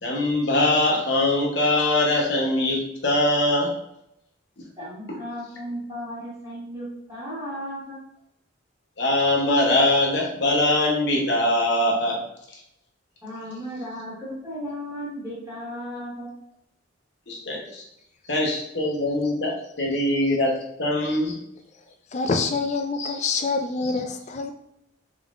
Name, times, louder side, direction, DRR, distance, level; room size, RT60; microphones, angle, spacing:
voice 1, 0.0-3.7 9.0-12.2 17.3-17.8 18.3-21.4 23.0-23.1, left 1 dB, 60° left, -1 dB, 0.9 m, -22 dB
voice 2, 4.8-8.0 13.2-16.3, equal, 15° right, -10 dB, 1.5 m, -35 dB
voice 3, 22.1-24.5, left 4 dB, 35° left, 7 dB, 0.3 m, -26 dB
3.7 x 3.6 x 2.4 m, 0.80 s
head